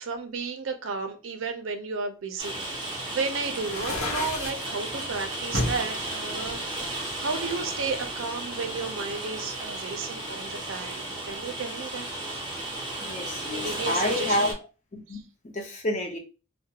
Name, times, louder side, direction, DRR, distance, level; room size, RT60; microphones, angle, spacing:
voice 1, 0.0-6.6 7.2-12.1 13.5-14.5 15.1-15.2, right 4 dB, 75° right, 0.5 m, -33 dB
Rain, 2.4-14.5, right 1 dB, 20° right, 0.6 m, -34 dB
sound 1, 3.6-4.7 5.5-5.8 6.4-7.5, left 2 dB, 85° left, 0.7 m, -31 dB
voice 2, 13.0-14.5 14.9-16.2, left 1 dB, 35° left, 0.6 m, -29 dB
2.3 x 2.1 x 2.7 m
head